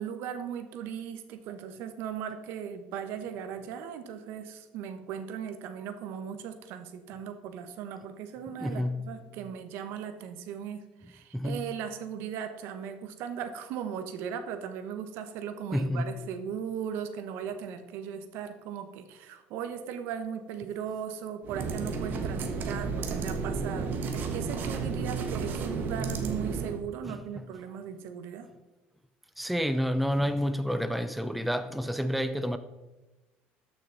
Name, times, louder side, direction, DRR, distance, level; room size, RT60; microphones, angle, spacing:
voice 1, 0.0-28.5, right 8 dB, 70° right, 8 dB, 1.1 m, -38 dB
voice 2, 8.6-9.1 11.3-11.7 15.7-16.1 27.0-27.5 29.4-32.6, equal, ahead, 10 dB, 0.5 m, -29 dB
sound 1, 21.4-26.8, right 4 dB, 50° right, 1.3 m, -32 dB
13.0 x 6.2 x 4.0 m, 1.1 s
cardioid pair, 110°, 4 cm